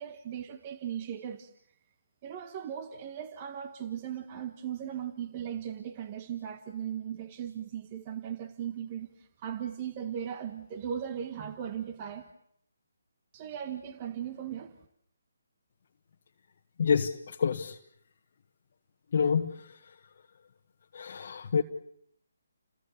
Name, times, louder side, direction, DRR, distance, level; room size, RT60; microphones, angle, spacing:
voice 1, 0.0-1.5 2.2-12.3 13.3-14.8, right 9 dB, 30° right, 9 dB, 1.6 m, -38 dB
voice 2, 16.8-17.8 19.1-20.0 20.9-21.6, left 6 dB, 50° left, 3 dB, 1.5 m, -28 dB
30.0 x 20.5 x 8.4 m, 0.70 s
hypercardioid pair, 155°, 0 cm